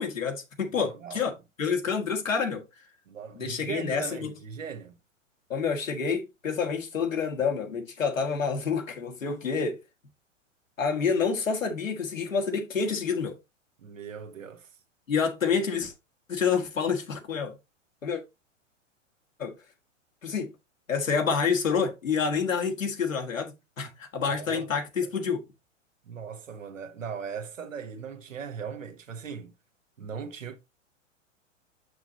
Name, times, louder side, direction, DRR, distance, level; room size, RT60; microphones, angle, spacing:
voice 1, 0.0-1.3 1.6-2.6 3.3-4.3 5.5-9.8 10.8-13.4 15.1-15.9 16.3-17.6 18.0-18.2 19.4-19.5 20.2-20.5 20.9-25.5, left 5 dB, 85° left, 1.8 m, -28 dB
voice 2, 0.7-1.2 3.1-5.0 13.8-14.7 24.3-24.7 25.0-25.1 26.0-29.5 30.0-30.6, right 7 dB, 80° right, 1.4 m, -39 dB
6.2 x 6.0 x 2.9 m
hypercardioid pair, 110°, 38 cm